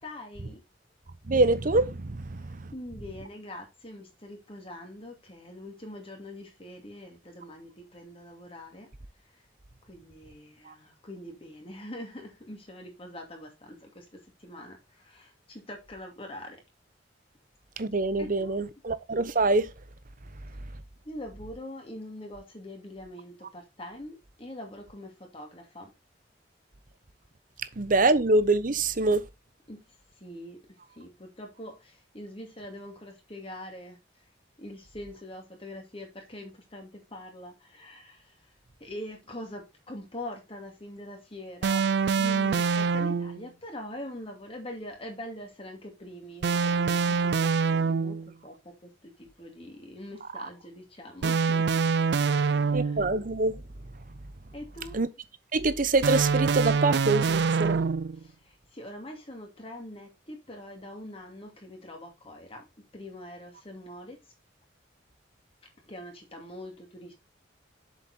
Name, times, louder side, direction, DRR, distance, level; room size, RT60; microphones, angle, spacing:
voice 1, 0.0-0.6 2.4-8.9 9.2-9.4 9.9-16.6 18.2-18.6 20.6-20.7 21.0-25.9 29.7-34.2 34.6-38.5 38.8-41.8 42.2-51.9 52.3-53.0 54.5-55.0 58.2-64.2 65.9-67.1, left 1 dB, 30° left, 2.5 m, -43 dB
voice 2, 1.3-2.7 10.7-10.8 17.8-19.7 27.8-29.3 50.4-50.5 52.7-53.6 54.9-55.1 55.5-57.8, right 2 dB, 50° right, 0.9 m, -25 dB
sound 1, 41.6-43.4 46.4-48.3 51.2-53.2 56.0-58.2, right 5 dB, 65° right, 0.4 m, -25 dB
7.4 x 7.2 x 4.1 m
head